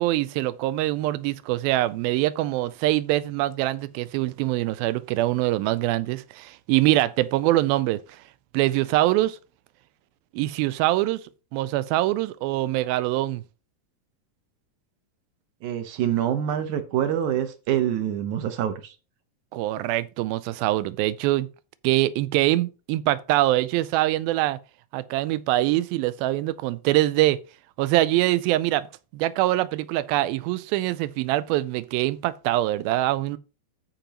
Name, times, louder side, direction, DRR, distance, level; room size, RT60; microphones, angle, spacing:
voice 1, 0.0-8.0 8.5-9.4 10.3-11.2 11.5-13.4 19.5-21.5 21.8-24.6 24.9-27.4 27.8-28.9 29.1-33.4, right 16 dB, 85° right, 2.4 m, -24 dB
voice 2, 15.6-19.0, right 10 dB, 70° right, 2.0 m, -26 dB
14.0 x 5.2 x 2.9 m
omnidirectional pair, 4.2 m